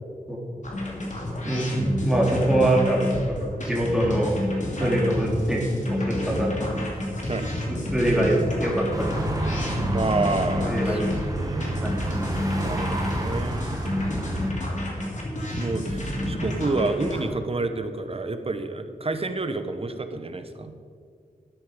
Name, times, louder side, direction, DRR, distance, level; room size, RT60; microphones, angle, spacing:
sound 1, 0.6-17.2, left 1 dB, 55° left, 2.6 m, -30 dB
voice 1, 1.4-3.0 3.3-4.3 4.8-5.6 5.9-6.7 7.9-9.1 10.6-11.1 11.8-11.9, right 1 dB, 5° right, -4 dB, 2.8 m, -23 dB
sound 2, 8.9-14.5, right 1 dB, 25° right, 1.7 m, -29 dB
voice 2, 9.9-11.1 11.4-11.9 12.5-13.6 15.5-20.7, right 3 dB, 40° right, 9 dB, 1.0 m, -29 dB
12.5 x 9.6 x 5.0 m, 2.2 s
wide cardioid pair, 85°, 15 cm